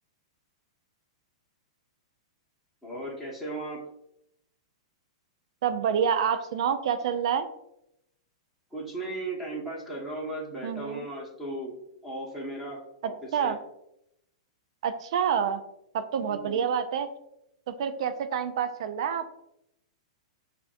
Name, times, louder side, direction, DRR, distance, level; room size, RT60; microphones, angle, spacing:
voice 1, 2.8-3.8 8.7-11.7 12.0-13.5 16.3-16.6, right 2 dB, 5° right, -5 dB, 1.3 m, -36 dB
voice 2, 5.6-7.5 10.6-11.1 13.3-13.6 14.8-15.6 15.9-17.1 17.7-19.4, right 7 dB, 65° right, 10 dB, 0.4 m, -27 dB
6.7 x 2.6 x 2.5 m, 0.81 s
hypercardioid pair, 120°, 3 cm